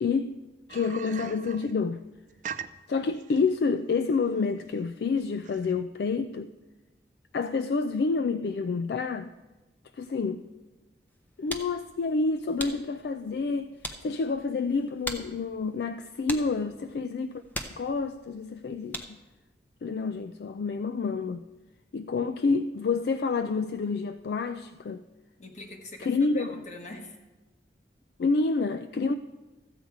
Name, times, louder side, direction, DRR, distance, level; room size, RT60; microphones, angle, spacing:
voice 1, 0.0-0.3 0.7-2.0 2.9-6.5 7.3-9.3 10.0-10.5 11.4-13.7 14.0-17.4 17.8-19.2 19.8-21.4 21.9-25.0 26.0-26.6 28.2-29.1, left 4 dB, 60° left, 0.3 m, -28 dB
sound 1, 0.7-5.8, right 7 dB, 45° right, 0.4 m, -42 dB
sound 2, 11.1-19.4, equal, 10° left, 0.7 m, -42 dB
voice 2, 25.4-27.3 28.2-28.3, left 2 dB, 40° left, 1.3 m, -44 dB
14.0 x 7.9 x 4.7 m
head